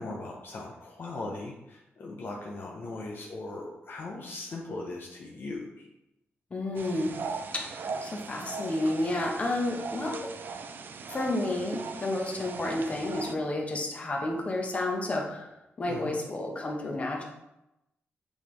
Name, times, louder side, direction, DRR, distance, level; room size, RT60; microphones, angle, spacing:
voice 1, 0.0-5.9 15.9-16.2, left 2 dB, 50° left, -1 dB, 0.8 m, -39 dB
voice 2, 6.5-7.1 7.5-10.3 11.1-15.5 15.8-17.2, left 1 dB, 30° left, -1 dB, 1.1 m, -31 dB
sound 1, 6.7-13.3, right 4 dB, 50° right, 0.4 m, -39 dB
8.3 x 3.5 x 3.2 m, 0.90 s
wide cardioid pair, 140°, 4 cm